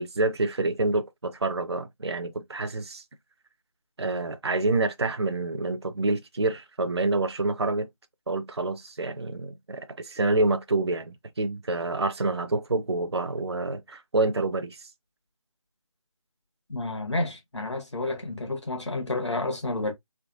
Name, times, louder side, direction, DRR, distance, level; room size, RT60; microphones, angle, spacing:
voice 1, 0.0-3.0 4.0-7.9 8.3-14.9, right 2 dB, 50° right, 0.4 m, -27 dB
voice 2, 16.7-19.9, left 2 dB, 55° left, 1.2 m, -30 dB
3.4 x 2.5 x 2.6 m
figure-of-eight pair, 165°, 18 cm